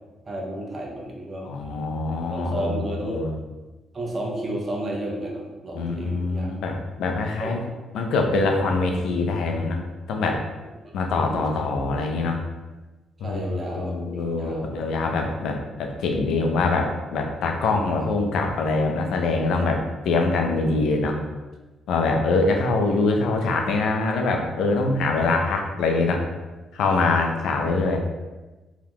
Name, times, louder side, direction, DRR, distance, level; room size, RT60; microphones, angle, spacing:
voice 1, 0.3-1.5 2.3-3.2 3.9-6.5 7.4-7.6 11.1-11.6 13.2-14.8 17.6-18.1 22.1-22.3 27.1-27.5, right 1 dB, 35° right, -1 dB, 0.7 m, -33 dB
voice 2, 1.4-2.7 3.0-3.3 5.7-7.6 7.9-9.8 10.1-10.4 10.9-12.4 13.2-21.1 21.9-26.2 26.7-28.0, left 3 dB, 80° left, 3 dB, 0.5 m, -24 dB
2.8 x 2.3 x 3.5 m, 1.2 s
cardioid pair, 90°, 0 cm